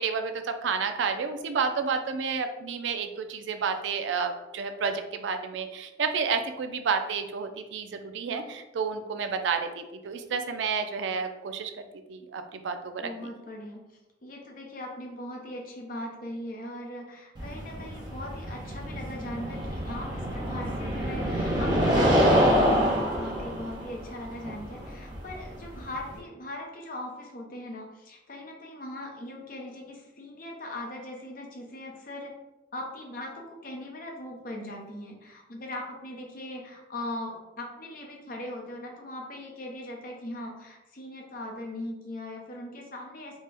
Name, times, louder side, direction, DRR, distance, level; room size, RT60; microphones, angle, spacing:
voice 1, 0.0-11.7 12.1-13.3, right 5 dB, 80° right, 7 dB, 0.4 m, -30 dB
voice 2, 13.0-13.8 14.2-32.3 32.7-43.4, left 1 dB, 50° left, 0 dB, 0.7 m, -39 dB
sound 1, 17.3-26.2, equal, 25° right, 0.8 m, -26 dB
4.3 x 2.1 x 3.3 m, 1.0 s
head